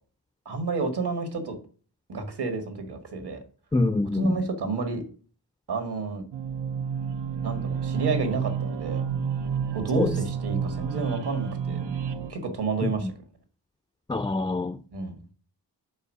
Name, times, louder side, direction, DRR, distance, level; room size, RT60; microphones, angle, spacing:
voice 1, 0.5-1.6 2.1-3.4 4.1-5.0 5.7-6.2 7.4-9.0 9.7-11.8 12.3-13.1 14.9-15.3, right 3 dB, 70° right, 1.9 m, -30 dB
voice 2, 3.7-4.4 10.0-10.1 12.8-13.1 14.1-14.8, left 2 dB, 10° left, 0.4 m, -25 dB
sound 1, 6.3-12.3, right 7 dB, 90° right, 0.8 m, -30 dB
5.4 x 4.6 x 6.4 m
wide cardioid pair, 80°, 42 cm